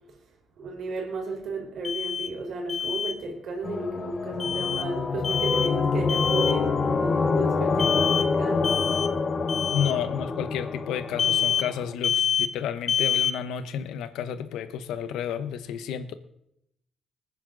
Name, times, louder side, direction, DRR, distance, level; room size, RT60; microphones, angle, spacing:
voice 1, 0.6-8.9, right 2 dB, 65° right, 1 dB, 4.3 m, -33 dB
Alarm, 1.8-2.3 2.7-3.1 4.4-4.9 5.2-5.7 6.1-6.6 7.8-8.3 8.6-9.1 9.5-9.9 11.2-11.7 12.0-12.5 12.9-13.4, left 8 dB, 55° left, 0.8 m, -26 dB
sound 1, 3.6-11.9, left 4 dB, 40° left, 1.2 m, -27 dB
voice 2, 9.7-16.1, left 8 dB, 85° left, 12 dB, 1.0 m, -31 dB
20.0 x 9.8 x 4.0 m, 0.78 s
cardioid pair, 90°, 0 cm